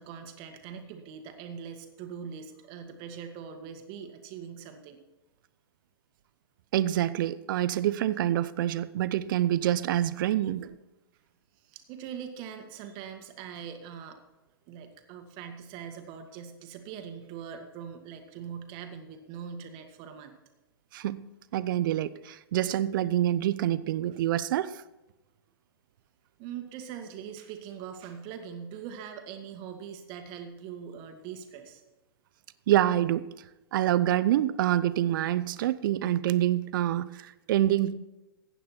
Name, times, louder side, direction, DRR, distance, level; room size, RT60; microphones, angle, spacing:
voice 1, 0.0-5.0 11.6-14.2 14.7-20.3 26.4-31.8, right 7 dB, 40° right, 6 dB, 1.9 m, -42 dB
voice 2, 6.7-10.8 20.9-21.2 21.5-24.8 32.7-33.3 33.7-37.9, right 12 dB, 55° right, 16 dB, 0.7 m, -26 dB
15.0 x 9.1 x 4.4 m, 1.0 s
hypercardioid pair, 115°, 13 cm